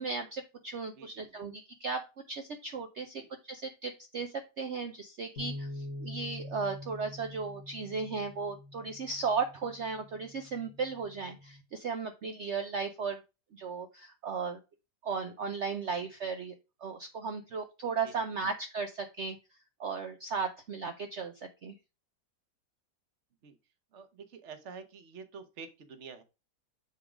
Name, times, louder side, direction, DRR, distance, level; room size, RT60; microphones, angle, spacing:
voice 1, 0.0-13.2 13.5-14.6 15.0-16.5 16.8-19.4 19.8-21.7, right 5 dB, 70° right, 6 dB, 0.6 m, -36 dB
voice 2, 0.9-1.4 3.2-3.3 18.0-18.1 23.4-23.6 23.9-26.2, right 5 dB, 50° right, 9 dB, 1.0 m, -48 dB
sound 1, 5.4-11.6, left 1 dB, 40° left, 1.1 m, -45 dB
7.0 x 3.7 x 4.9 m, 0.28 s
omnidirectional pair, 2.0 m